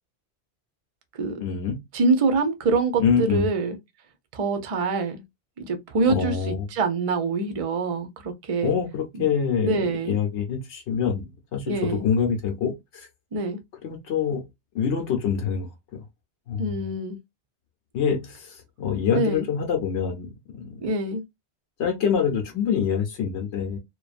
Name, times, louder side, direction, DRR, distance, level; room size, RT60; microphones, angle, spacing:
voice 1, 1.4-1.8 3.0-3.5 6.1-6.7 8.6-13.1 13.8-14.4 14.7-15.7 16.5-16.9 17.9-20.9 21.8-23.8, left 7 dB, 90° left, 1.0 m, -25 dB
voice 2, 1.9-3.8 4.3-5.2 5.6-8.7 9.2-9.3 9.6-10.2 11.7-12.1 13.3-13.6 16.6-17.2 19.1-19.5 20.8-21.2, right 3 dB, 45° right, 0.5 m, -25 dB
2.6 x 2.2 x 2.4 m
omnidirectional pair, 1.1 m